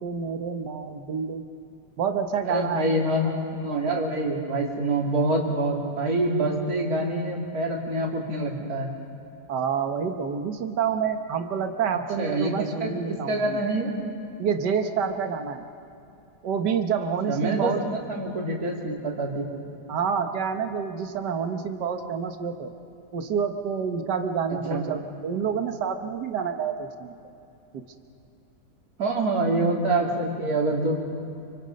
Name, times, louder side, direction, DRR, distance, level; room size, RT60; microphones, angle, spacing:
voice 1, 0.0-1.4 2.0-2.9 9.5-13.6 14.4-15.6 16.4-17.8 19.9-22.7 23.1-27.1, right 6 dB, 75° right, 6 dB, 1.8 m, -28 dB
voice 2, 2.4-8.9 12.2-12.9 13.3-13.9 17.3-19.4 24.7-24.8 29.0-31.0, right 2 dB, 60° right, -1 dB, 3.3 m, -26 dB
28.5 x 24.5 x 5.3 m, 2.7 s
omnidirectional pair, 1.8 m